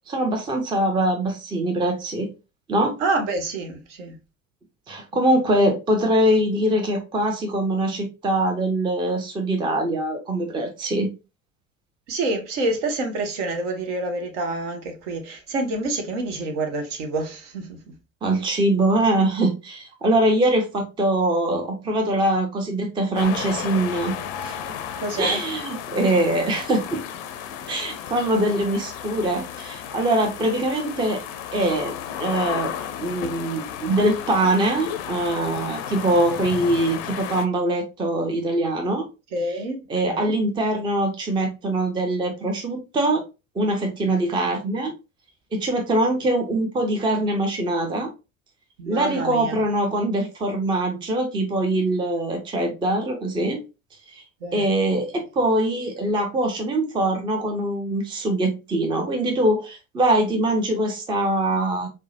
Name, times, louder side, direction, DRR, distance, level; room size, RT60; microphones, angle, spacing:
voice 1, 0.1-2.3 2.7-3.0 4.9-11.1 18.2-24.2 24.4-24.5 25.2-27.0 27.7-31.2 31.5-31.9 32.2-32.7 33.0-39.1 39.9-43.2 43.6-44.9 45.5-48.1 48.9-53.6 54.1-54.2 54.5-61.9, right 1 dB, 10° right, 0.5 m, -23 dB
voice 2, 3.0-4.2 12.1-18.0 25.0-25.4 39.3-39.8 40.0-40.3 44.0-44.1 48.8-49.6 54.4-54.6, right 2 dB, 55° right, 0.9 m, -27 dB
sound 1, 23.1-37.4, left 9 dB, 45° left, 0.5 m, -33 dB
4.5 x 2.0 x 2.7 m
figure-of-eight pair, 70°, 43 cm